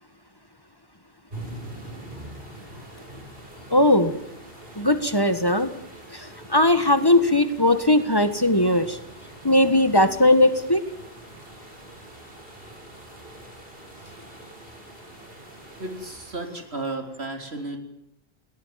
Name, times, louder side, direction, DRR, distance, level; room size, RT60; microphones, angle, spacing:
sound 1, 1.3-16.8, right 1 dB, 65° right, 7.0 m, -44 dB
voice 1, 3.7-4.2 4.7-5.8 6.1-9.0 9.4-10.8, left 1 dB, 20° left, 10 dB, 1.7 m, -19 dB
voice 2, 15.8-17.8, right 2 dB, 90° right, 5 dB, 4.0 m, -33 dB
30.0 x 18.0 x 7.7 m, 0.77 s
omnidirectional pair, 1.1 m